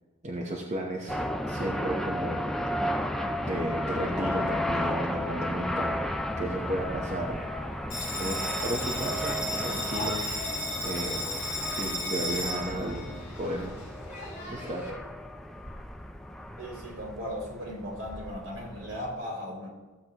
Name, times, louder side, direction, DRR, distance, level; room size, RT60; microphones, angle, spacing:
voice 1, 0.2-1.2 1.5-2.8 3.4-5.9 6.4-7.8 8.2-10.5 10.8-11.3 11.7-13.7 14.5-14.8, right 1 dB, 35° right, -2 dB, 1.0 m, -34 dB
sound 1, 1.1-19.1, equal, ahead, 0.4 m, -34 dB
Bell, 7.9-14.9, left 1 dB, 50° left, 3.7 m, -34 dB
voice 2, 16.6-19.7, equal, 65° right, -2 dB, 3.7 m, -37 dB
15.5 x 8.0 x 3.0 m, 1.3 s
head